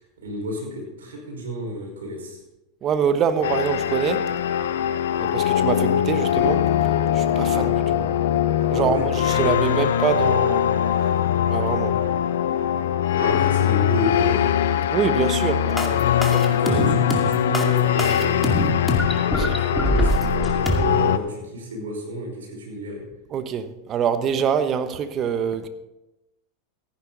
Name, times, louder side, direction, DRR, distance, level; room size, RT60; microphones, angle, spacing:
voice 1, 0.2-2.4 7.4-7.7 8.7-9.1 13.1-14.4 16.6-18.5 19.1-23.0, equal, 85° right, 5.3 m, -30 dB
voice 2, 2.8-4.3 5.2-6.6 7.1-8.1 8.7-10.7 11.5-12.0 14.9-16.8 19.4-19.6 23.3-25.7, right 7 dB, 40° right, 1.1 m, -25 dB
sound 1, 3.4-21.2, left 10 dB, 75° left, 0.7 m, -22 dB
sound 2, 15.8-20.8, equal, 5° left, 2.3 m, -23 dB
14.5 x 10.5 x 4.0 m
hypercardioid pair, 100°, 0 cm